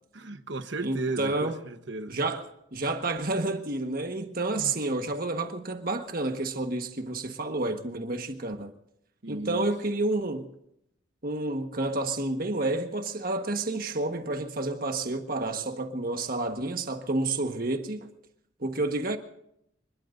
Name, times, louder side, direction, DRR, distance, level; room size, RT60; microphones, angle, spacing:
voice 1, 0.1-2.2 4.6-4.8 9.2-9.7, right 2 dB, 65° right, 1.1 m, -35 dB
voice 2, 0.8-1.6 2.1-8.7 9.3-10.5 11.2-18.1 18.6-19.2, right 2 dB, 50° right, 1.4 m, -30 dB
26.0 x 21.0 x 2.6 m
head